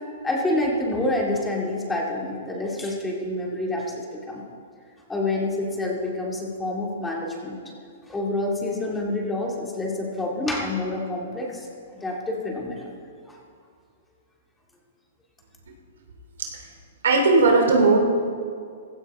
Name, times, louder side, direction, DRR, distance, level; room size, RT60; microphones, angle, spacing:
voice 1, 0.2-4.4 5.1-7.6 8.1-11.7 12.0-12.9 13.3-13.4, left 2 dB, 10° left, -2 dB, 2.3 m, -27 dB
voice 2, 17.0-18.0, right 3 dB, 85° right, 1 dB, 2.9 m, -17 dB
16.0 x 14.5 x 3.6 m, 2.2 s
hypercardioid pair, 140°, 0 cm